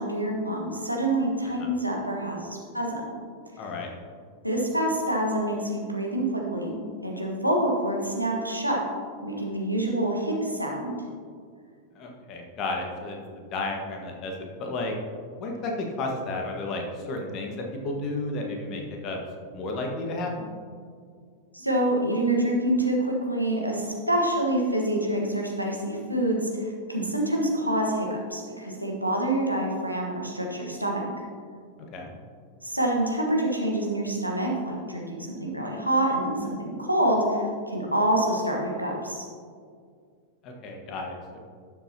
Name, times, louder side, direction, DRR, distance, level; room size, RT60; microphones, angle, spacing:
voice 1, 0.0-3.1 4.4-6.7 7.0-8.8 9.2-10.9 21.5-31.0 32.6-39.2, right 1 dB, 90° right, -1 dB, 1.3 m, -26 dB
voice 2, 3.6-3.9 11.9-14.3 14.6-14.9 15.4-20.5 31.9-32.1 40.4-41.4, left 2 dB, 35° left, 1 dB, 1.5 m, -32 dB
11.5 x 7.1 x 2.9 m, 2.1 s
figure-of-eight pair, 90°, 0 cm